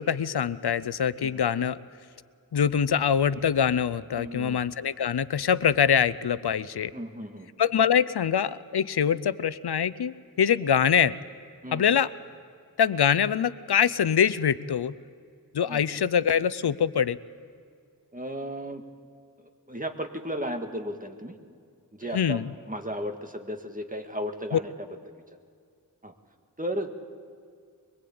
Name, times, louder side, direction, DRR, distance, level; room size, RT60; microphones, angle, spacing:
voice 1, 0.0-1.8 2.5-6.9 7.6-11.1 11.7-12.1 12.8-14.9 15.5-17.2 22.1-22.5 24.5-24.6, left 8 dB, 85° left, 16 dB, 0.6 m, -24 dB
voice 2, 4.2-4.6 6.9-7.5 11.6-11.9 15.7-15.8 18.1-18.8 19.7-21.4 21.9-22.4 22.7-24.7 26.0-26.1 26.6-26.9, equal, 20° right, 5 dB, 1.9 m, -34 dB
23.0 x 23.0 x 8.6 m, 2.2 s
wide cardioid pair, 75°, 38 cm